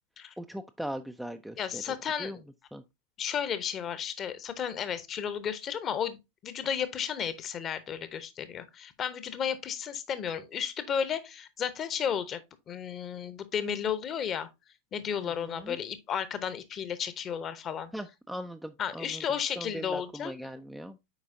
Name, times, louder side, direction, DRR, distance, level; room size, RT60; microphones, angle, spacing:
voice 1, 0.4-2.4 2.7-2.8 15.2-15.8 17.9-19.2 19.6-21.1, equal, ahead, 0.4 m, -40 dB
voice 2, 1.6-2.3 3.2-6.2 6.4-12.4 12.7-14.5 14.9-17.9 18.8-20.3, left 8 dB, 30° left, 0.9 m, -33 dB
8.0 x 4.9 x 2.7 m
figure-of-eight pair, 90°, 0 cm